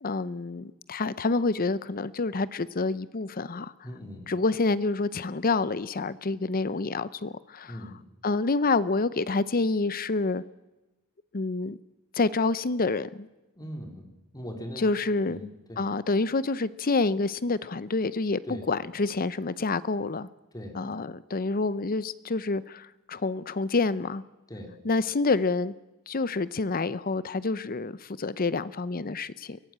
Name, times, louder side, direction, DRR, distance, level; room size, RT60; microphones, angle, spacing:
voice 1, 0.0-3.7 4.3-7.8 8.2-10.4 11.3-11.8 12.1-13.3 14.8-15.4 15.8-20.3 20.7-24.2 24.8-25.7 26.1-29.6, left 3 dB, 40° left, 17 dB, 0.7 m, -28 dB
voice 2, 3.8-4.3 7.6-8.0 13.5-14.9 15.3-15.8 18.5-18.7 20.5-20.8 24.5-24.8, equal, 20° left, 4 dB, 3.2 m, -40 dB
23.0 x 16.5 x 8.7 m, 1.1 s
head